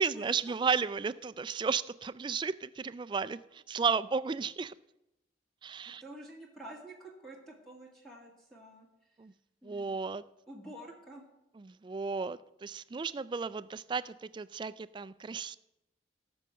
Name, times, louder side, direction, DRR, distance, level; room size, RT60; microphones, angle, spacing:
voice 1, 0.0-4.7 5.6-6.0 9.2-9.3 9.6-10.2 11.6-15.6, right 5 dB, 25° right, 15 dB, 0.3 m, -33 dB
voice 2, 5.8-8.9 9.6-9.9 10.5-11.2, right 1 dB, 5° left, -2 dB, 1.9 m, -49 dB
18.5 x 6.3 x 5.7 m, 0.92 s
head